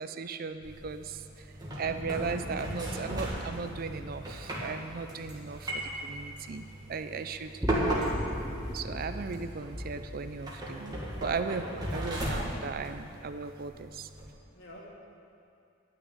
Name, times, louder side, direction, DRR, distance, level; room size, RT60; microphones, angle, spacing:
voice 1, 0.0-1.5 1.8-8.1 8.7-11.7 11.9-14.1, right 5 dB, 45° right, 10 dB, 0.4 m, -37 dB
sound 1, 0.6-14.3, right 1 dB, 20° right, 1.8 m, -37 dB
sound 2, 1.7-8.1 8.5-9.1, equal, 45° left, 2.6 m, -45 dB
sound 3, 7.6-12.0, equal, 5° right, 1.2 m, -38 dB
voice 2, 14.5-14.9, left 1 dB, 65° left, -4 dB, 2.5 m, -53 dB
11.5 x 6.2 x 9.0 m, 2.6 s
head